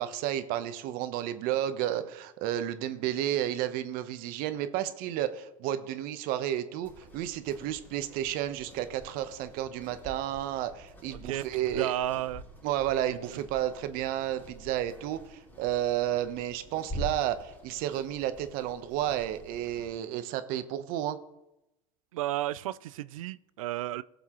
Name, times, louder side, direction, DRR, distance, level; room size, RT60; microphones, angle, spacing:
voice 1, 0.0-12.0 12.6-21.2, right 12 dB, 60° right, 1.0 m, -32 dB
sound 1, 6.8-20.0, equal, 10° left, 3.4 m, -46 dB
voice 2, 11.2-12.4 13.3-13.4 22.1-24.0, right 13 dB, 90° right, 0.4 m, -33 dB
18.0 x 7.2 x 3.0 m
supercardioid pair, 105°, 17 cm